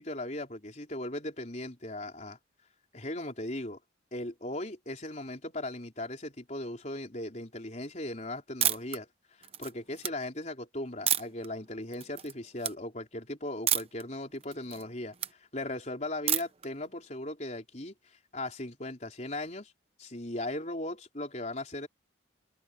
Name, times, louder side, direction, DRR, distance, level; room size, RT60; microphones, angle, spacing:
voice 1, 0.0-2.4 2.9-3.8 4.1-9.1 9.4-18.0 18.3-19.7 20.0-21.9, left 1 dB, 40° left, 4.2 m, -38 dB
sound 1, 8.6-9.0 9.4-10.1 11.1-11.5 11.9-12.3 12.6-12.7 13.7-14.0 14.4-15.3 16.3-16.7, right 10 dB, 30° right, 1.0 m, -29 dB
head